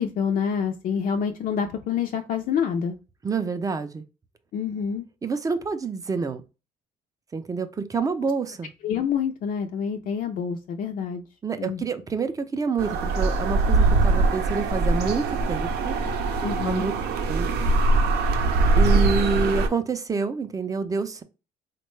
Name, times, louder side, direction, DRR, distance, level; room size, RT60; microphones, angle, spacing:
voice 1, 0.0-3.0 4.5-5.1 7.9-8.0 8.8-11.2 11.6-11.9 16.4-16.9, left 7 dB, 55° left, 0.4 m, -27 dB
voice 2, 3.2-4.0 5.2-6.4 7.3-8.7 11.4-16.0 16.6-16.9 17.3-17.7 18.8-21.2, right 5 dB, 20° right, 0.4 m, -27 dB
sound 1, 12.8-19.7, right 3 dB, 75° right, 0.6 m, -22 dB
3.5 x 2.2 x 3.1 m
cardioid pair, 110°, 17 cm